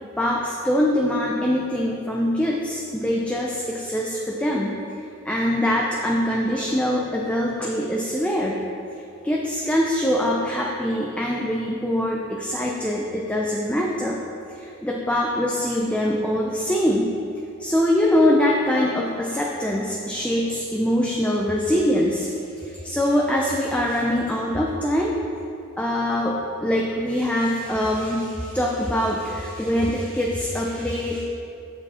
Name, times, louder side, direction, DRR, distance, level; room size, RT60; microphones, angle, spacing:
voice 1, 0.2-8.6 9.2-14.2 14.5-17.2 17.6-25.2 25.8-31.2, left 1 dB, 5° left, -2 dB, 0.5 m, -23 dB
7.5 x 7.3 x 4.3 m, 2.7 s
head